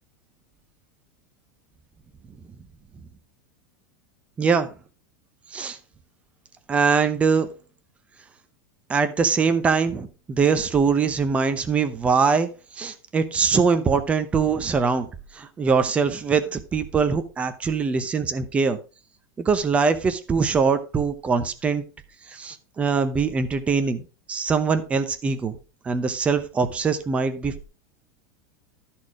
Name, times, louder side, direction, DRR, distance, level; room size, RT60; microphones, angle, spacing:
voice 1, 4.4-4.7 5.5-5.8 6.7-7.5 8.9-12.5 12.8-15.1 15.3-18.8 19.4-21.8 22.3-24.0 24.3-25.6 25.8-27.6, right 5 dB, 10° right, 10 dB, 0.7 m, -22 dB
13.0 x 4.4 x 4.7 m, 0.34 s
supercardioid pair, 175°, 10 cm